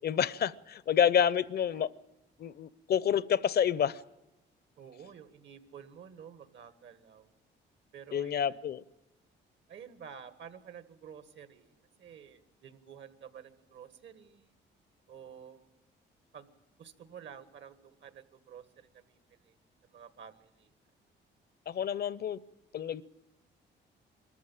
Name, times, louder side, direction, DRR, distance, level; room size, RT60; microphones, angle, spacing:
voice 1, 0.0-1.9 2.4-4.0 8.1-8.8 21.7-22.4 22.7-23.0, left 8 dB, 55° left, 0.6 m, -28 dB
voice 2, 4.8-7.3 7.9-8.6 9.7-14.6 15.1-15.6 16.3-19.5 19.8-20.7, right 8 dB, 65° right, 1.6 m, -51 dB
22.5 x 14.0 x 8.9 m
cardioid pair, 90°, 20 cm